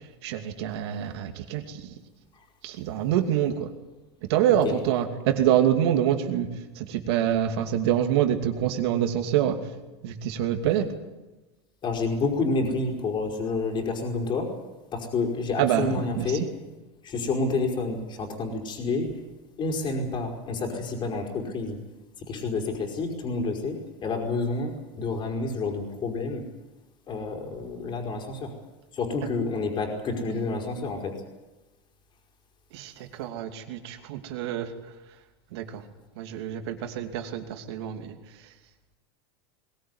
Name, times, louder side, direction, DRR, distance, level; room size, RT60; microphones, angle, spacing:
voice 1, 0.2-1.8 2.6-3.7 4.3-6.5 6.8-9.6 10.0-10.8 15.6-16.3 32.7-32.9 33.2-34.7 35.5-35.8 36.2-38.1, right 10 dB, 70° right, 6 dB, 2.7 m, -26 dB
voice 2, 4.5-4.9 11.8-14.5 14.9-16.5 17.0-19.1 19.6-21.8 22.3-26.4 27.1-28.5 28.9-31.1, left 3 dB, 35° left, 2 dB, 5.0 m, -29 dB
21.5 x 17.0 x 9.7 m, 1.1 s
supercardioid pair, 115°, 14 cm